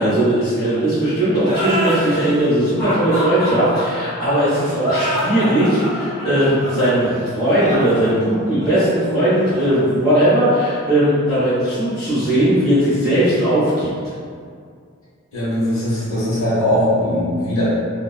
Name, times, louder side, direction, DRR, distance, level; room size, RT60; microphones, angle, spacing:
voice 1, 0.0-13.9, right 1 dB, 30° left, -18 dB, 1.1 m, -18 dB
sound 1, 1.4-10.7, equal, 35° right, 1.1 m, -27 dB
voice 2, 15.3-17.7, left 1 dB, 65° left, -11 dB, 1.1 m, -20 dB
2.6 x 2.1 x 2.3 m, 2.2 s
head